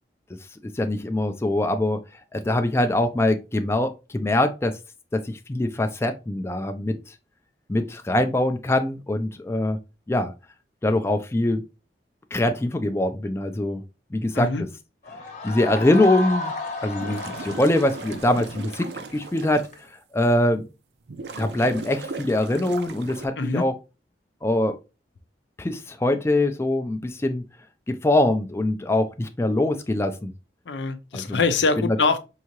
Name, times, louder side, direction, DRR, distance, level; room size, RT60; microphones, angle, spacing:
voice 1, 0.7-2.0 2.3-4.7 5.1-7.0 7.7-9.8 10.1-10.3 10.8-11.6 12.3-13.8 14.1-14.7 15.4-16.5 16.8-19.9 20.1-20.6 21.4-23.7 24.4-24.8 25.6-27.4 27.9-30.3 31.1-31.4 31.8-32.0, left 1 dB, 15° left, 0.4 m, -23 dB
sound 1, 15.0-19.8, left 1 dB, 45° left, 0.9 m, -33 dB
sound 2, 16.8-19.7 20.2-20.3 21.1-23.3, right 3 dB, 65° right, 0.5 m, -37 dB
voice 2, 30.7-32.2, left 4 dB, 85° left, 0.6 m, -23 dB
4.7 x 2.7 x 2.9 m
head